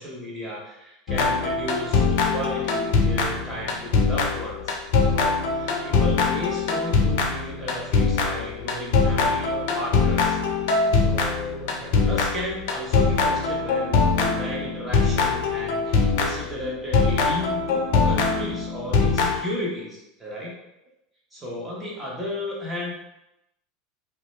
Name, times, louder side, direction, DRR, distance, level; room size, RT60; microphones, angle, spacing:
voice 1, 0.0-10.6 10.9-20.5 21.3-23.0, left 1 dB, 20° right, -4 dB, 1.1 m, -34 dB
sound 1, 1.1-16.5 16.9-19.4, left 4 dB, 70° left, 0.5 m, -22 dB
2.7 x 2.2 x 3.1 m, 0.86 s
hypercardioid pair, 85°, 0 cm